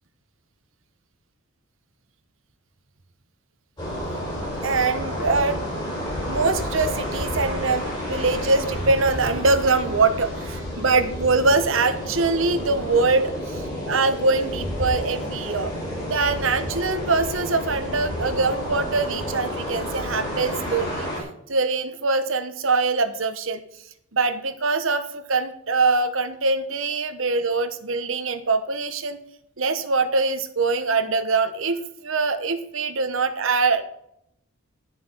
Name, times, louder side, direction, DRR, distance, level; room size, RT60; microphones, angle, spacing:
sound 1, 3.8-21.2, equal, 20° left, 5.2 m, -30 dB
voice 1, 4.6-5.6 6.2-13.6 13.9-15.7 16.0-21.1 21.5-23.6 24.1-29.2 29.6-33.8, right 3 dB, 65° right, 10 dB, 1.1 m, -23 dB
11.0 x 6.9 x 5.6 m, 0.76 s
head